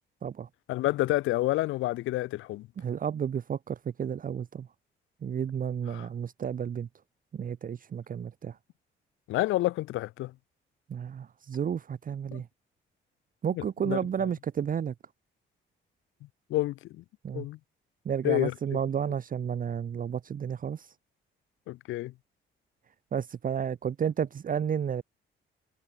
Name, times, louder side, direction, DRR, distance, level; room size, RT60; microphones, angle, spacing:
voice 1, 0.7-2.7 5.9-6.1 9.3-10.3 12.3-12.4 13.5-14.3 16.5-17.0 17.3-17.6 18.2-18.8 21.7-22.1, left 17 dB, 90° left, 1.0 m, -29 dB
voice 2, 2.8-4.7 5.2-6.9 7.3-8.6 10.9-12.5 13.4-14.9 17.2-17.4 18.0-20.9 23.1-25.0, right 8 dB, 45° right, 0.9 m, -32 dB
cardioid pair, 90°, 20 cm